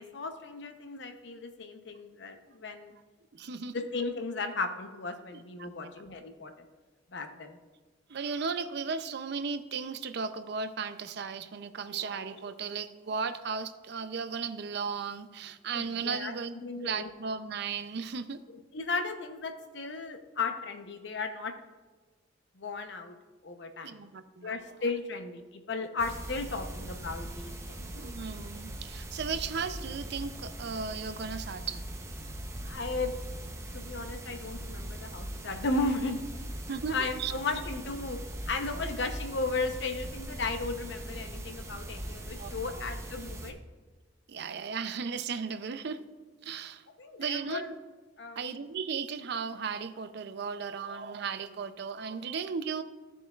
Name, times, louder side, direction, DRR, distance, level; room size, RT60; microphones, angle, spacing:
voice 1, 0.0-2.9 3.4-6.5 7.1-7.6 15.7-16.4 16.6-17.1 18.7-21.5 22.6-23.1 23.4-24.0 24.4-27.9 32.6-33.2 33.7-36.2 36.9-38.2 38.5-43.6 47.0-47.7 48.2-48.4, left 3 dB, 65° left, 6 dB, 0.8 m, -35 dB
voice 2, 3.3-3.9 5.3-5.9 8.1-16.6 16.8-18.4 23.8-24.8 26.6-26.7 27.9-31.8 36.7-37.3 38.7-38.8 42.4-42.5 42.8-42.9 44.3-46.0 46.4-46.8 47.2-47.8 48.4-52.8, right 5 dB, 60° right, 10 dB, 0.5 m, -36 dB
sound 1, 26.0-43.5, right 1 dB, 15° right, 0.8 m, -40 dB
14.0 x 6.9 x 2.4 m, 1.3 s
head